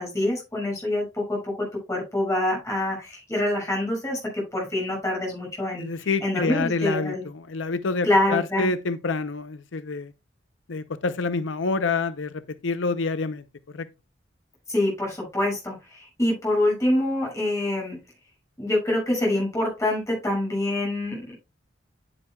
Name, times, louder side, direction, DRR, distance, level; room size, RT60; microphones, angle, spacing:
voice 1, 0.0-5.9 6.2-7.2 8.0-8.7 14.7-18.0 18.6-21.4, left 1 dB, 15° left, 6.2 m, -25 dB
voice 2, 5.8-10.1 10.7-13.4 13.7-13.9, left 4 dB, 80° left, 0.6 m, -27 dB
10.0 x 9.7 x 2.3 m
head